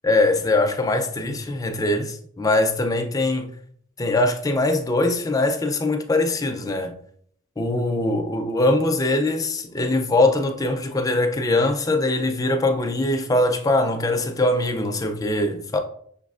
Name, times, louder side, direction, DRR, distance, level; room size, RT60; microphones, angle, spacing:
voice 1, 0.0-3.5 4.0-7.0 7.6-15.8, left 2 dB, 15° left, 0.4 m, -22 dB
5.8 x 3.2 x 2.4 m
head